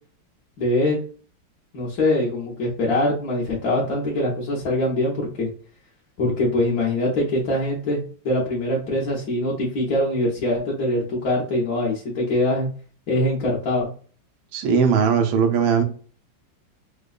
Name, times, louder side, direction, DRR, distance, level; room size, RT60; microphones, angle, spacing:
voice 1, 0.6-1.0 1.7-5.5 6.2-12.7 13.1-13.9, left 1 dB, 60° left, 1.2 m, -23 dB
voice 2, 14.5-15.8, right 6 dB, 90° right, 1.5 m, -19 dB
4.8 x 2.2 x 2.4 m
omnidirectional pair, 2.1 m